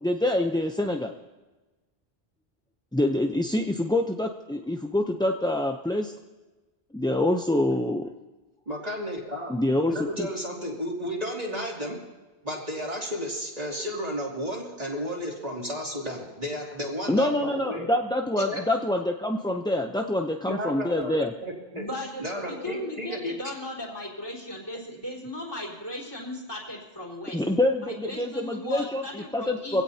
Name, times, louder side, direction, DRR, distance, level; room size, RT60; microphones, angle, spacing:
voice 1, 0.0-1.1 2.9-6.1 6.9-8.1 9.5-10.3 17.1-21.3 27.3-29.8, left 1 dB, 5° left, 3 dB, 0.5 m, -26 dB
voice 2, 8.7-9.5 9.9-12.0 12.4-17.9 18.3-18.6 20.4-21.1 21.4-21.9 22.2-23.3, equal, 40° right, -3 dB, 2.9 m, -33 dB
voice 3, 21.7-27.4 27.8-29.8, left 1 dB, 25° left, -2 dB, 4.1 m, -37 dB
24.0 x 17.0 x 2.8 m, 1.2 s
omnidirectional pair, 1.0 m